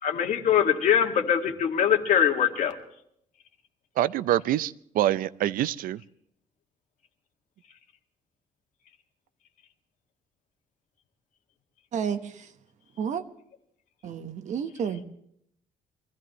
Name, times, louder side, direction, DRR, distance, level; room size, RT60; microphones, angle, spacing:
voice 1, 0.0-2.8, left 9 dB, 65° left, 2.0 m, -23 dB
voice 2, 4.0-6.0, right 13 dB, 80° right, 0.5 m, -25 dB
voice 3, 11.9-12.2 13.0-13.2 14.0-15.0, right 7 dB, 55° right, 1.1 m, -30 dB
23.5 x 15.5 x 3.1 m
cardioid pair, 155°, 14 cm